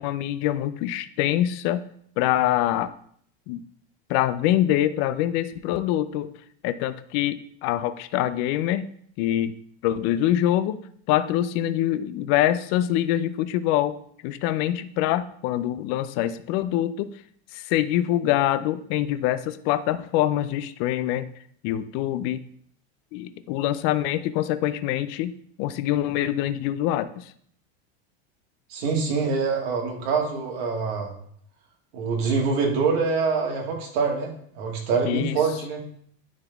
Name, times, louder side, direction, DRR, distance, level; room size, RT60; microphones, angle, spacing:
voice 1, 0.0-1.8 2.2-2.9 3.5-3.6 4.1-6.3 6.6-8.8 9.2-9.5 9.8-10.8 11.1-14.0 14.2-17.1 17.5-21.3 21.6-22.4 23.1-27.2 35.0-35.4, left 12 dB, 50° left, 13 dB, 0.4 m, -24 dB
voice 2, 28.7-31.1 31.9-35.8, right 4 dB, 65° right, 0 dB, 2.2 m, -25 dB
10.0 x 4.0 x 3.5 m, 0.62 s
supercardioid pair, 150°, 32 cm